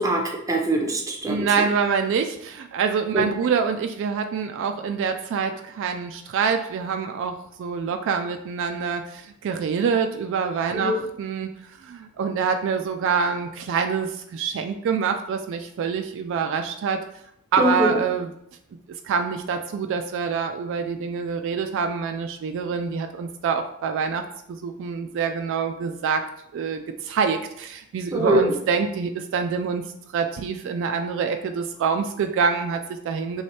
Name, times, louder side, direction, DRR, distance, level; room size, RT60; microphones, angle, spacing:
voice 1, 0.0-1.6 3.1-3.2 10.7-11.0 17.6-18.0 28.1-28.5, right 1 dB, 15° right, 2 dB, 0.6 m, -23 dB
voice 2, 1.3-11.5 11.8-17.0 17.5-18.3 19.0-24.2 24.5-26.2 26.5-29.8 30.1-33.4, right 6 dB, 60° right, 6 dB, 0.3 m, -26 dB
3.2 x 3.1 x 4.2 m, 0.75 s
head